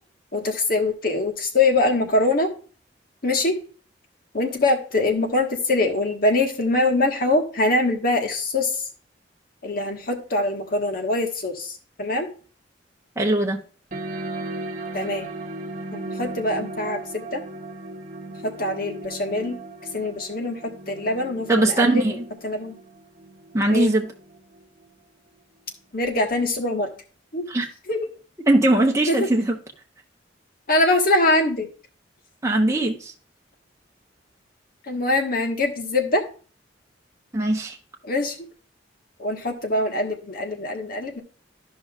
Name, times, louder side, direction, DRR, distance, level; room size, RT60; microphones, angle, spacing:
voice 1, 0.3-2.5 3.2-3.6 4.3-8.9 9.6-12.3 14.9-15.3 15.9-17.4 18.4-19.6 19.9-22.2 22.4-22.7 23.7-23.9 25.9-26.9 27.3-27.4 27.9-28.1 29.1-29.3 30.7-31.7 34.9-36.2 38.0-38.4 39.2-41.2, left 2 dB, 50° left, 1.4 m, -23 dB
voice 2, 13.2-13.6 21.5-22.2 23.5-24.1 27.5-27.7 28.5-29.6 32.4-33.1 37.3-37.8, right 1 dB, 15° right, 1.0 m, -20 dB
sound 1, 13.9-24.9, right 2 dB, 45° right, 1.1 m, -37 dB
13.0 x 5.5 x 2.4 m
head